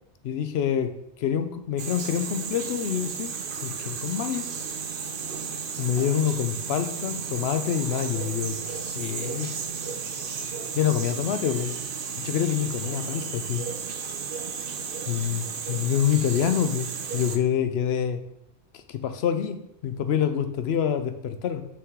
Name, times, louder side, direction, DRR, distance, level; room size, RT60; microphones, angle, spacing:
voice 1, 0.2-0.9 1.2-3.3 3.6-4.5 5.8-9.5 10.7-11.7 12.2-13.7 15.1-18.2 18.7-21.6, left 9 dB, 70° left, 9 dB, 0.8 m, -26 dB
sound 1, 1.8-17.4, right 6 dB, 60° right, 0.8 m, -34 dB
6.0 x 3.7 x 4.6 m, 0.78 s
omnidirectional pair, 1.1 m